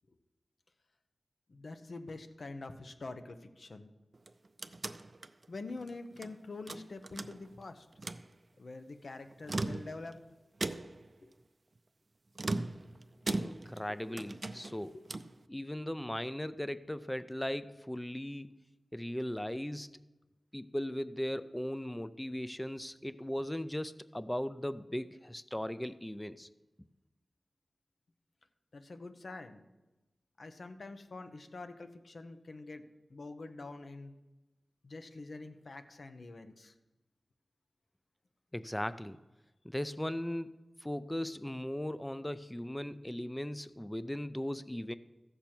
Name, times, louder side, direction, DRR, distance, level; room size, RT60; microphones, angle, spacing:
voice 1, 1.5-3.9 5.5-7.9 8.6-10.2 11.2-11.3 13.9-14.2 14.9-15.0 28.7-29.6 30.4-32.8 33.1-34.2 34.8-36.7, left 3 dB, 70° left, 7 dB, 0.9 m, -46 dB
sound 1, 4.1-6.3 6.7-7.6 7.9-8.3 9.3-10.2 10.6-11.1 12.3-13.9 14.2-15.4, right 2 dB, 50° right, 0.5 m, -38 dB
voice 2, 13.3-15.0 15.5-18.5 18.9-20.0 20.5-26.5 38.5-39.2 39.6-40.5 40.8-44.9, left 1 dB, 10° left, 14 dB, 0.4 m, -38 dB
15.0 x 6.8 x 4.5 m, 1.1 s
wide cardioid pair, 65°, 0 cm